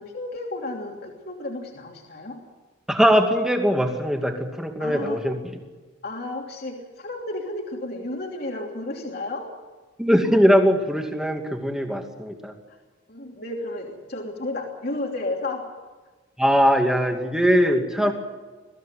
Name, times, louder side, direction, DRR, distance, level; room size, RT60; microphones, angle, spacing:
voice 1, 0.0-2.4 4.8-5.2 6.0-9.5 13.1-15.6 18.0-18.1, left 2 dB, 50° left, 0 dB, 3.0 m, -32 dB
voice 2, 2.9-5.4 10.0-12.5 16.4-18.1, equal, 5° right, 3 dB, 2.4 m, -20 dB
22.5 x 15.5 x 9.5 m, 1.3 s
head